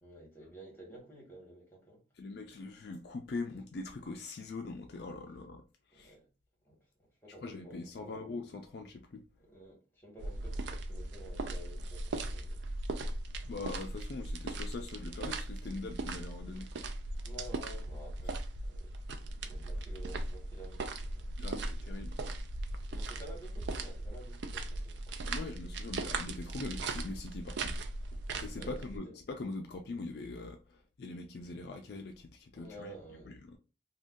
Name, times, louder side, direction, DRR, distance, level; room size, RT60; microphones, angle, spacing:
voice 1, 0.0-2.0 5.9-6.3 6.6-8.4 9.4-12.6 17.2-21.6 21.8-21.9 22.9-25.2 28.5-29.1 32.5-33.4, right 1 dB, 10° left, 1.2 m, -52 dB
voice 2, 2.2-5.6 5.9-6.1 7.4-9.2 13.4-16.7 21.4-22.2 25.3-27.8 28.4-32.9 33.3-33.6, left 3 dB, 55° left, 0.4 m, -42 dB
sound 1, 10.2-29.0, right 2 dB, 70° right, 0.4 m, -38 dB
2.5 x 2.3 x 3.6 m
head